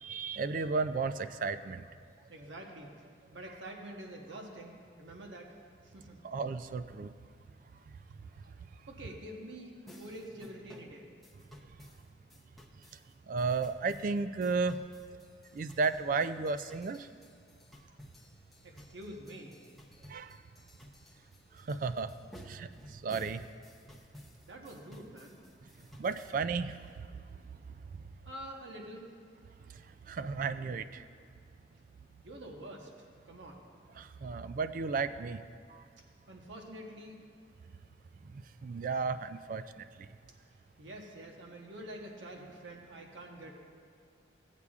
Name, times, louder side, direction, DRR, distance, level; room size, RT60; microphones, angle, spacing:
voice 1, 0.0-1.8 6.2-7.1 13.3-14.8 15.5-17.1 20.1-20.4 21.6-22.1 22.4-23.4 26.0-27.1 30.1-31.1 34.0-35.4 35.7-35.8 38.3-39.8, right 4 dB, 45° right, 12 dB, 0.3 m, -33 dB
voice 2, 2.3-3.1 3.3-5.5 5.8-6.2 8.4-8.5 8.9-11.1 18.6-19.7 24.4-25.4 28.3-29.1 32.2-33.6 36.3-37.2 40.8-43.5, right 1 dB, 90° right, 0 dB, 1.1 m, -47 dB
sound 1, 9.9-26.4, left 1 dB, ahead, 0.7 m, -56 dB
17.0 x 8.2 x 2.4 m, 2.2 s
head